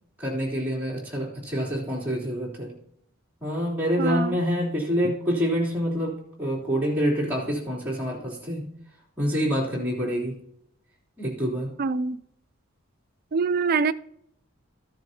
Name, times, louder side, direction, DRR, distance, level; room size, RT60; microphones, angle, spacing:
voice 1, 0.2-2.7 3.4-8.7 9.2-10.4 11.2-11.8, equal, 10° right, -7 dB, 3.2 m, -27 dB
voice 2, 4.0-4.3 11.8-12.2 13.3-13.9, right 4 dB, 45° right, 12 dB, 0.4 m, -24 dB
13.0 x 10.5 x 2.8 m, 0.74 s
head